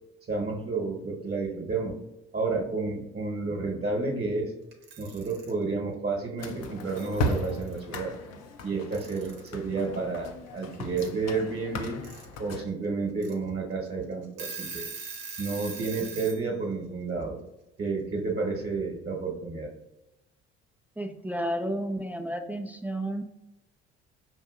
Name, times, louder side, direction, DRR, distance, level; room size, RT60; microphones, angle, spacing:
voice 1, 0.3-2.0 2.3-4.5 5.0-8.2 8.6-12.0 12.4-14.9 15.4-17.4 17.8-19.7, right 3 dB, 35° right, -1 dB, 1.1 m, -31 dB
Alarm / Clock, 4.7-5.5 6.7-6.8 7.0-7.8 8.9-9.5 11.0-11.1 11.8-12.3 12.7-12.8 13.2-13.3 13.9-14.0 14.2-16.4, right 5 dB, 90° right, 0.8 m, -41 dB
sound 1, 6.4-12.7, left 1 dB, 60° left, 0.6 m, -36 dB
voice 2, 21.0-23.2, right 1 dB, 5° right, 5 dB, 0.4 m, -32 dB
5.8 x 2.6 x 2.4 m, 0.94 s
hypercardioid pair, 60°, 30 cm